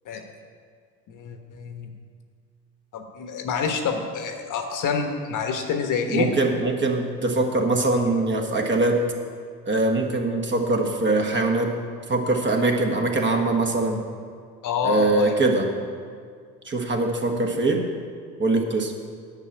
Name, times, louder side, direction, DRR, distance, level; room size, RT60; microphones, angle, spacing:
voice 1, 1.1-1.9 2.9-6.3 14.6-15.3 17.3-17.6, left 6 dB, 40° left, 5 dB, 1.2 m, -27 dB
voice 2, 6.1-9.0 9.7-11.7 12.1-14.0 14.8-15.7 16.6-17.8 18.4-18.9, right 2 dB, 20° right, 2 dB, 1.5 m, -22 dB
9.8 x 5.9 x 8.5 m, 2.1 s
hypercardioid pair, 75°, 50 cm